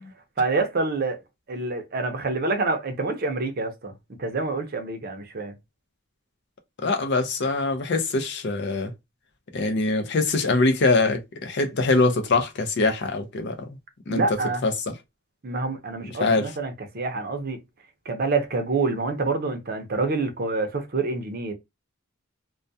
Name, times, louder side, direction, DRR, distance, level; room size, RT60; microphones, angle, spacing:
voice 1, 0.4-1.2 1.5-3.9 4.2-5.5 14.1-14.6 15.4-17.6 18.1-21.5, right 3 dB, 45° right, 0.6 m, -27 dB
voice 2, 6.8-8.9 9.5-13.6 14.1-14.9 16.0-16.5, left 3 dB, 55° left, 0.5 m, -23 dB
2.2 x 2.2 x 2.6 m
head